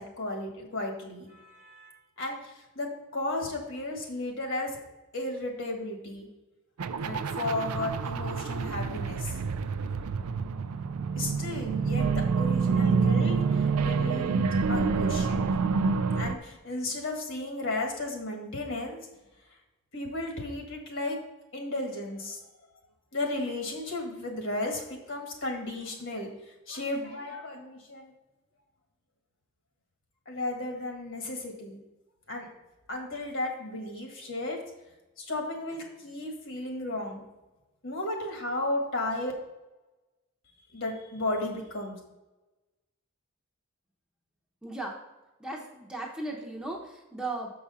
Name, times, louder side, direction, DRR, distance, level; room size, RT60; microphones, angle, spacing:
voice 1, 0.0-2.9 3.1-4.8 5.1-6.3 7.0-9.3 11.1-15.5 16.2-19.0 19.9-21.2 21.5-22.4 23.1-26.3 26.7-28.1 30.2-31.8 32.3-32.5 32.9-34.6 35.2-37.2 37.8-39.3 40.7-42.0, left 2 dB, 60° left, 2 dB, 1.7 m, -34 dB
sound 1, 6.8-16.3, right 5 dB, 85° right, 0.4 m, -27 dB
voice 2, 44.6-44.9 45.4-47.5, right 2 dB, 5° right, -2 dB, 0.9 m, -36 dB
7.1 x 4.9 x 5.5 m, 1.1 s
head